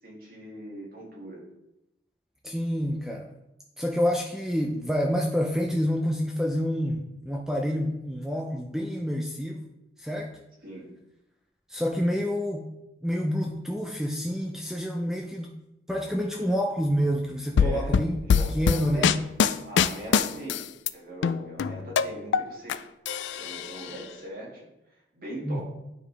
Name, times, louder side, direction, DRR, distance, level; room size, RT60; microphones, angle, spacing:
voice 1, 0.0-1.4 10.6-10.9 17.6-19.2 19.7-20.6 20.9-22.8 23.3-24.7 25.1-25.6, right 1 dB, 50° right, -4 dB, 2.1 m, -40 dB
voice 2, 2.4-3.3 3.8-9.6 10.0-10.3 11.7-12.7 13.0-15.5 15.9-18.2 18.5-19.2 25.4-25.6, equal, 5° right, 0 dB, 0.5 m, -28 dB
sound 1, 17.6-20.9 21.2-22.8 23.1-23.9, left 7 dB, 85° left, 0.3 m, -23 dB
9.5 x 4.9 x 3.3 m, 0.91 s
head